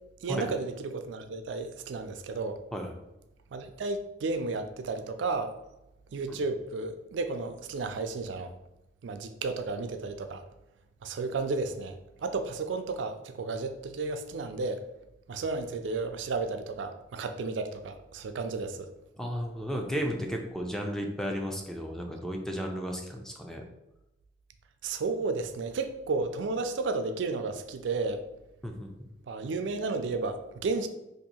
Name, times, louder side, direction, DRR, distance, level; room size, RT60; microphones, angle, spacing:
voice 1, 0.2-2.6 3.5-5.5 6.1-8.5 9.0-10.4 11.0-12.0 12.2-14.8 15.3-18.9 24.8-28.2 29.3-30.9, right 3 dB, 80° right, 8 dB, 0.4 m, -33 dB
voice 2, 19.2-23.6 28.6-29.1, equal, 5° left, 2 dB, 0.4 m, -34 dB
2.7 x 2.6 x 4.1 m, 0.94 s
head